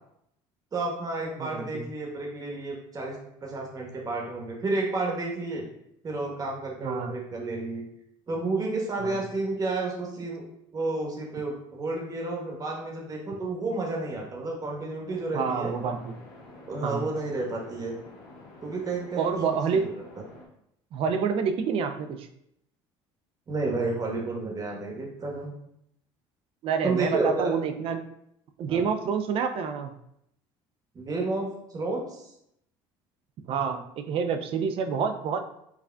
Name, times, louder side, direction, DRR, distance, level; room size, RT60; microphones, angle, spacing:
voice 1, 0.7-5.6 6.0-7.8 8.3-10.5 10.7-15.7 16.7-17.9 18.6-20.0 23.5-25.5 26.8-27.5 28.7-28.8 30.9-32.2, right 3 dB, 30° right, -1 dB, 1.0 m, -31 dB
voice 2, 1.4-1.8 6.8-7.1 9.0-9.2 15.3-16.1 16.8-17.1 19.2-19.9 20.9-22.3 26.6-28.0 28.6-29.9 33.5-35.4, right 6 dB, 55° right, 8 dB, 0.4 m, -28 dB
sound 1, 15.1-20.5, left 2 dB, 80° left, 0.9 m, -49 dB
4.7 x 2.4 x 2.2 m, 0.76 s
supercardioid pair, 95°, 11 cm